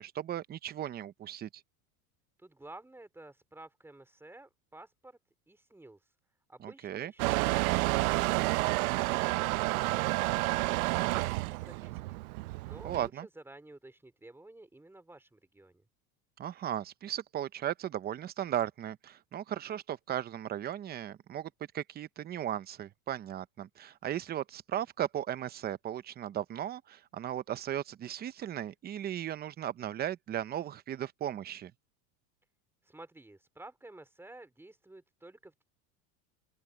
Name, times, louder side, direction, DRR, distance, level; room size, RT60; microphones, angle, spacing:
voice 1, 0.0-1.6 6.6-7.1 12.8-13.3 16.4-31.7, right 11 dB, 20° right, 0.7 m, -36 dB
voice 2, 2.4-5.2 5.5-6.2 6.5-15.8 32.8-35.6, right 2 dB, 5° right, 4.0 m, -53 dB
Motor vehicle (road) / Engine starting / Accelerating revving vroom, 7.2-13.1, right 23 dB, 75° right, 0.7 m, -30 dB
open air
supercardioid pair, 145°, 43 cm